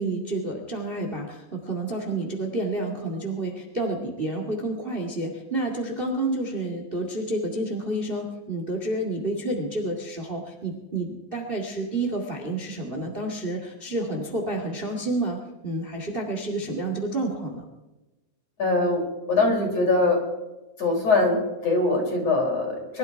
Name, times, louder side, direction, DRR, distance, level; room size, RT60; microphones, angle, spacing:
voice 1, 0.0-17.6, right 2 dB, 40° right, 2 dB, 0.8 m, -29 dB
voice 2, 18.6-19.0 19.3-20.2 20.8-23.0, left 2 dB, 35° left, 0 dB, 5.4 m, -22 dB
24.0 x 12.5 x 4.7 m, 1.1 s
omnidirectional pair, 5.1 m